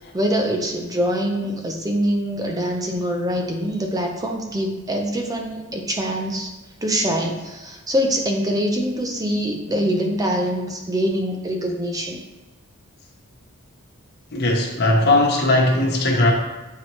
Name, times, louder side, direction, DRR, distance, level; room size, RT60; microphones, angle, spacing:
voice 1, 0.0-6.5 6.8-12.2, equal, 15° right, 2 dB, 0.5 m, -24 dB
voice 2, 14.3-16.3, left 2 dB, 50° left, -1 dB, 1.1 m, -18 dB
7.7 x 4.6 x 3.1 m, 1.2 s
head